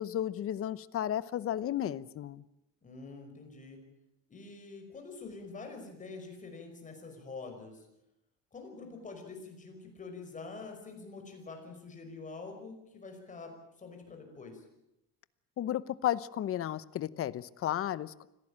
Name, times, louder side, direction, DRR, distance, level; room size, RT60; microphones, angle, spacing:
voice 1, 0.0-2.4 15.6-18.3, left 11 dB, 40° left, 17 dB, 0.9 m, -33 dB
voice 2, 2.8-3.8 4.3-7.9 8.5-14.7, left 4 dB, 25° left, 4 dB, 5.4 m, -46 dB
25.5 x 17.0 x 8.8 m, 0.88 s
cardioid pair, 155°, 33 cm